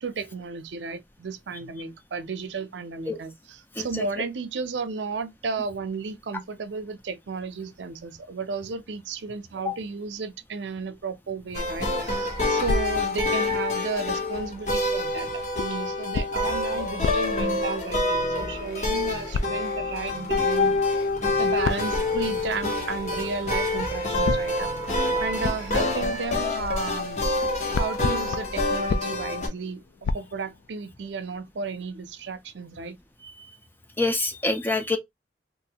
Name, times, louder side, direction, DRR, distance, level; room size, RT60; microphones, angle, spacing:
voice 1, 0.0-21.0 21.4-24.7 25.2-27.3 27.8-33.0, right 4 dB, 85° right, 0.5 m, -33 dB
sound 1, 11.5-29.5, left 2 dB, 40° left, 0.9 m, -27 dB
sound 2, 12.6-13.9 15.6-18.5 19.3-20.2 21.6-22.8 24.2-27.1 27.4-31.1, left 4 dB, 80° left, 0.3 m, -33 dB
sound 3, 18.1-26.1, equal, 60° left, 1.2 m, -43 dB
voice 2, 34.0-35.0, left 3 dB, 10° left, 0.4 m, -25 dB
3.1 x 2.5 x 2.8 m
head